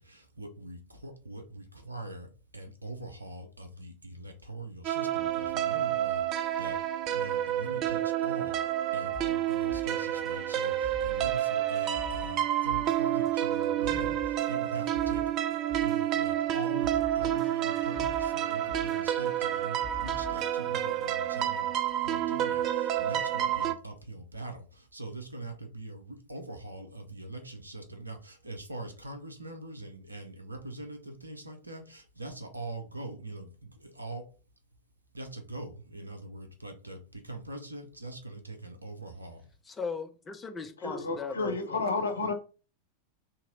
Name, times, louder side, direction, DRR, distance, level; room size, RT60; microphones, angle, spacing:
voice 1, 0.0-6.8 7.1-15.3 15.8-34.3 35.1-39.5, right 2 dB, 80° right, 0.8 m, -42 dB
sound 1, 4.8-23.7, right 12 dB, 35° right, 0.4 m, -29 dB
sound 2, 9.1-21.1, left 3 dB, ahead, 1.8 m, -45 dB
voice 2, 39.7-41.8, left 5 dB, 15° left, 0.6 m, -38 dB
voice 3, 40.8-42.3, left 3 dB, 70° left, 0.7 m, -31 dB
2.9 x 2.9 x 3.8 m
figure-of-eight pair, 90°, 0 cm